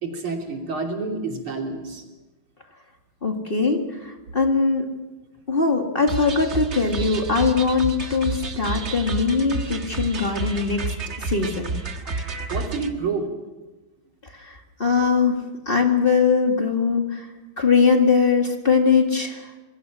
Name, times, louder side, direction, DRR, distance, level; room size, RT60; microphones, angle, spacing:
voice 1, 0.0-2.0 12.5-13.3, right 4 dB, 85° right, 2 dB, 3.9 m, -28 dB
voice 2, 3.2-4.9 5.5-10.8 11.2-11.7 14.3-17.3 17.6-19.6, left 5 dB, 25° left, 3 dB, 2.0 m, -21 dB
sound 1, 6.1-12.9, right 3 dB, 35° right, 1.7 m, -30 dB
26.0 x 22.0 x 6.3 m, 1.2 s
omnidirectional pair, 2.3 m